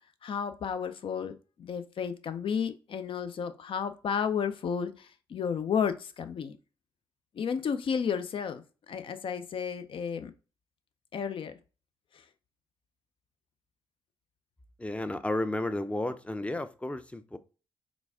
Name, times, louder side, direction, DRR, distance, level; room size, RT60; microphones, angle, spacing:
voice 1, 0.2-6.6 7.3-10.3 11.1-11.6, left 7 dB, 55° left, 0.5 m, -32 dB
voice 2, 14.8-17.4, left 1 dB, 10° left, 0.5 m, -32 dB
4.0 x 2.4 x 3.4 m
supercardioid pair, 50°, 10 cm